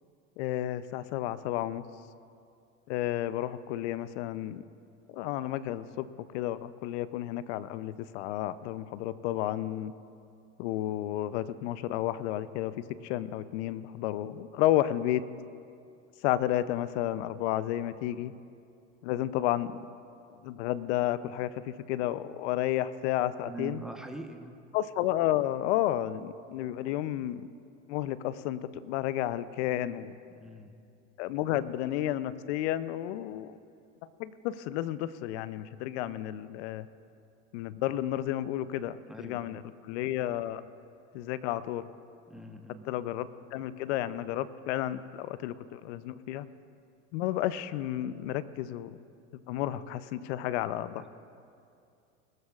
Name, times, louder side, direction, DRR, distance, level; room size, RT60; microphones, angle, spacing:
voice 1, 0.4-1.8 2.9-4.6 5.1-6.1 6.3-9.9 10.6-12.7 13.0-15.2 16.2-18.3 19.0-19.7 20.4-23.8 24.7-27.5 27.9-30.2 31.2-33.6 34.2-36.9 37.5-40.6 41.1-41.9 42.8-46.5 47.1-49.0 49.5-51.0, left 13 dB, 70° left, 15 dB, 0.7 m, -31 dB
voice 2, 23.4-24.5 30.4-30.7 39.1-39.6 42.3-42.8 51.0-51.1, right 2 dB, ahead, 4 dB, 1.0 m, -43 dB
20.0 x 13.0 x 2.4 m, 2.5 s
hypercardioid pair, 90°, 36 cm